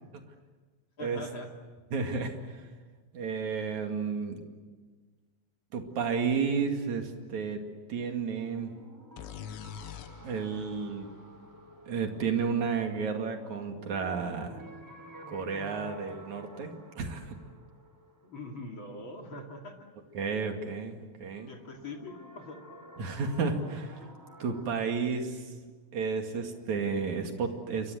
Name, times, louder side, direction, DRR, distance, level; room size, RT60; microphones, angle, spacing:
voice 1, 1.0-1.5 18.2-19.7 21.5-22.6, left 2 dB, 35° left, 2 dB, 2.2 m, -42 dB
voice 2, 1.9-2.5 3.1-4.4 5.7-7.6 7.9-8.7 10.2-11.1 11.9-14.6 15.3-17.3 20.1-21.5 23.0-24.0 24.4-25.4 25.9-27.9, right 5 dB, 45° right, 4 dB, 3.0 m, -32 dB
sound 1, 8.4-19.2 21.3-24.6, equal, 5° right, 2.2 m, -51 dB
sound 2, 9.2-12.9, left 9 dB, 80° left, 3.3 m, -46 dB
28.5 x 24.0 x 7.8 m, 1.4 s
omnidirectional pair, 5.5 m